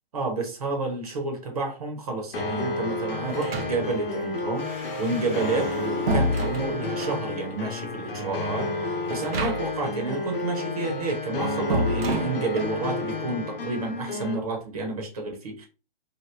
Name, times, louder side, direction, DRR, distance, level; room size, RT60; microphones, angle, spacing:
voice 1, 0.1-4.7 5.0-8.7 9.1-15.7, right 3 dB, 40° right, 2 dB, 0.8 m, -30 dB
sound 1, 2.3-14.3, left 2 dB, 65° left, 0.9 m, -31 dB
sound 2, 3.3-4.1 5.4-7.2 9.1-9.9 10.2-10.3 11.7-12.8, right 1 dB, 80° right, 0.8 m, -29 dB
Domestic sounds home sounds, 4.5-8.9, left 1 dB, 5° left, 0.6 m, -46 dB
3.0 x 2.2 x 3.2 m, 0.33 s
hypercardioid pair, 165°, 29 cm